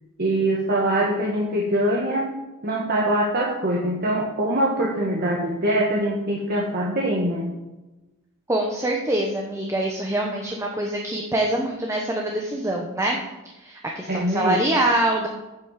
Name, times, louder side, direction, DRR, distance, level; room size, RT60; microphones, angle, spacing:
voice 1, 0.2-2.3 2.6-7.5 14.1-14.6, right 1 dB, 45° right, -3 dB, 1.5 m, -23 dB
voice 2, 8.5-13.2 13.5-15.3, right 1 dB, 15° right, 0 dB, 1.0 m, -24 dB
8.3 x 6.2 x 7.3 m, 1.0 s
head